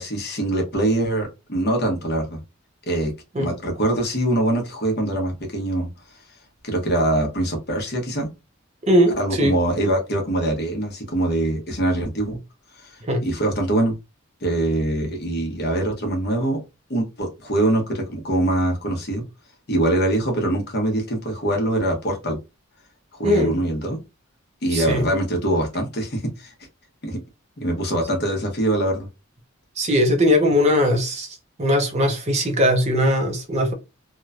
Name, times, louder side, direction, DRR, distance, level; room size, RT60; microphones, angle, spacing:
voice 1, 0.0-2.4 2.9-5.9 6.6-8.3 9.2-12.4 12.8-13.9 14.4-16.6 16.9-19.2 19.7-22.4 23.1-24.0 24.6-26.5 27.0-27.2 27.6-29.1, right 1 dB, 45° left, 0.9 m, -23 dB
voice 2, 8.8-9.5 13.1-13.2 23.2-23.5 24.7-25.0 29.8-33.7, equal, 30° right, 0.5 m, -20 dB
3.0 x 2.1 x 2.4 m
head